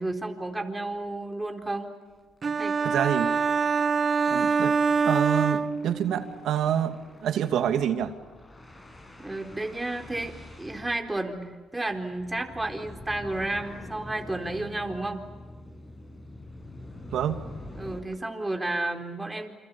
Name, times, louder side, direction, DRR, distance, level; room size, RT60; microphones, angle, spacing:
voice 1, 0.0-1.9 2.6-2.7 9.2-15.2 17.8-19.5, right 2 dB, 15° right, 3 dB, 4.2 m, -32 dB
sound 1, 1.3-1.5 1.8-1.9 2.2-2.4 2.7-2.8 4.1-18.0, left 1 dB, 25° left, 8.0 m, -45 dB
sound 2, 2.4-6.3, right 5 dB, 40° right, 0.8 m, -25 dB
voice 2, 2.8-3.3 4.3-4.8 5.0-8.1 17.1-17.5, right 9 dB, 75° right, 7 dB, 2.4 m, -27 dB
29.0 x 27.5 x 7.1 m, 1.3 s
cardioid pair, 90°, 0 cm